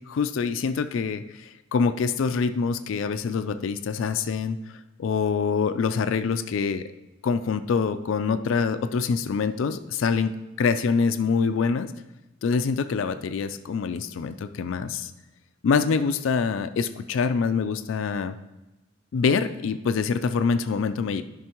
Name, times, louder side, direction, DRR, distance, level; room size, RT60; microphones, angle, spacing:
voice 1, 0.1-4.6 5.0-6.9 7.2-11.9 12.4-15.1 15.6-18.4 19.1-21.2, left 5 dB, 70° left, 11 dB, 0.4 m, -25 dB
11.0 x 5.4 x 2.9 m, 1.0 s
head